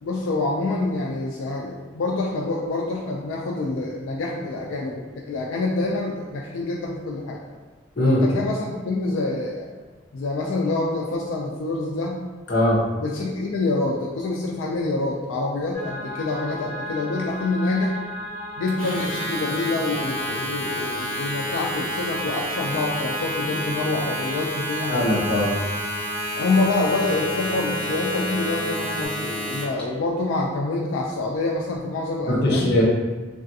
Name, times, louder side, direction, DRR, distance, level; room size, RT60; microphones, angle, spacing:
voice 1, 0.0-7.4 8.0-9.7 10.1-12.2 13.0-17.9 18.6-25.2 26.3-32.7, left 2 dB, 85° left, -2 dB, 0.4 m, -26 dB
voice 2, 12.5-12.8 24.9-25.5 32.3-32.8, left 1 dB, 55° left, -3 dB, 0.7 m, -20 dB
sound 1, 15.7-29.1, left 1 dB, 40° right, 1.5 m, -34 dB
Domestic sounds home sounds, 18.7-29.8, equal, 5° left, 0.8 m, -30 dB
3.3 x 2.4 x 2.6 m, 1.3 s
head